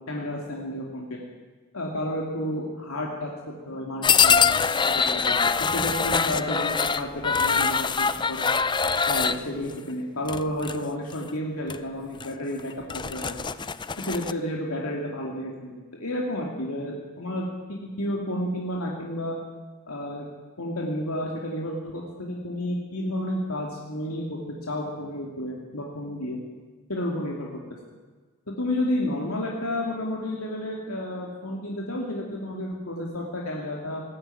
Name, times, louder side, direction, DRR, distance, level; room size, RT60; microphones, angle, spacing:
voice 1, 0.1-1.3 1.7-4.4 4.7-8.4 9.1-13.4 14.0-19.4 19.9-20.3 20.6-24.4 24.7-26.4 26.9-27.5 28.5-34.0, left 1 dB, 90° left, -2 dB, 3.0 m, -31 dB
sound 1, 4.0-9.4 10.3-10.8 11.1-11.3 11.7-11.8 12.2-12.3 12.7-14.3, left 6 dB, 20° left, 0.5 m, -23 dB
20.0 x 15.0 x 9.3 m, 1.4 s
head